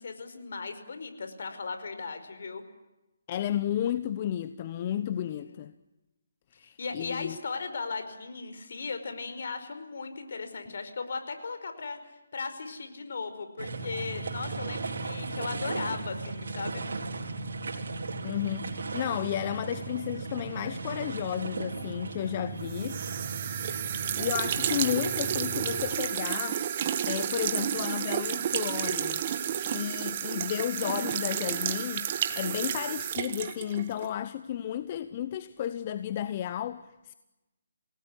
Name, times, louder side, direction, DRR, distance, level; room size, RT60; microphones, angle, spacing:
voice 1, 0.0-2.6 4.8-5.3 6.6-12.0 12.3-16.8 32.4-32.7, left 4 dB, 65° left, 5.1 m, -37 dB
voice 2, 3.3-5.7 6.5-7.4 18.2-23.1 24.2-26.6 27.1-29.2 29.7-37.1, left 11 dB, 35° left, 1.0 m, -33 dB
sound 1, 13.6-25.8, right 3 dB, 75° right, 4.3 m, -36 dB
sound 2, 22.7-34.1, right 9 dB, 35° right, 1.7 m, -31 dB
28.5 x 18.5 x 9.9 m
hypercardioid pair, 160°, 0 cm